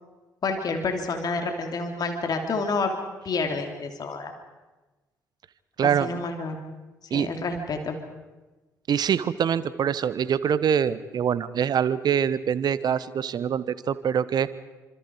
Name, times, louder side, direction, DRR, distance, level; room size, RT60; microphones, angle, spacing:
voice 1, 0.4-2.9 3.2-4.3 5.8-6.6 7.1-8.0, left 3 dB, 50° left, 4 dB, 3.4 m, -29 dB
voice 2, 5.8-6.2 7.1-7.3 8.9-14.5, right 8 dB, 50° right, 16 dB, 1.3 m, -24 dB
29.0 x 26.5 x 4.8 m, 1.2 s
hypercardioid pair, 50°, 9 cm